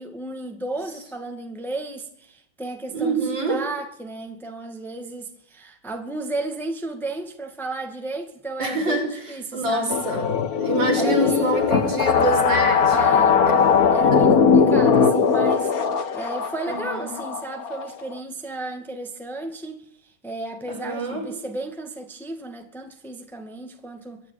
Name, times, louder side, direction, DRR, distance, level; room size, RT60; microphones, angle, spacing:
voice 1, 0.0-10.0 10.9-11.6 12.9-13.4 13.9-24.2, right 2 dB, ahead, 2.1 m, -33 dB
voice 2, 2.9-3.7 8.6-10.3 10.5-13.6 14.1-14.2 16.7-17.1 20.7-21.3, right 2 dB, 60° right, 6.8 m, -26 dB
sound 1, 9.9-18.2, left 6 dB, 50° left, 1.6 m, -19 dB
24.0 x 12.0 x 9.5 m
omnidirectional pair, 2.2 m